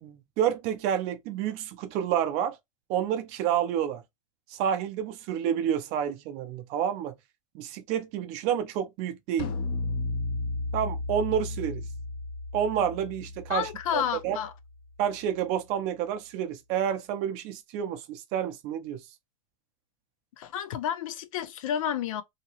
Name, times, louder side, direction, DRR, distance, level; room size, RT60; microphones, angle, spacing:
voice 1, 0.0-2.6 2.9-4.0 4.5-7.1 7.5-9.5 10.7-11.8 12.5-14.4 15.0-19.0, right 9 dB, 40° right, 0.5 m, -29 dB
sound 1, 9.4-14.8, left 3 dB, 25° left, 0.4 m, -34 dB
voice 2, 13.5-14.5 20.4-22.2, left 9 dB, 70° left, 0.6 m, -30 dB
2.8 x 2.8 x 2.8 m
supercardioid pair, 150°, 18 cm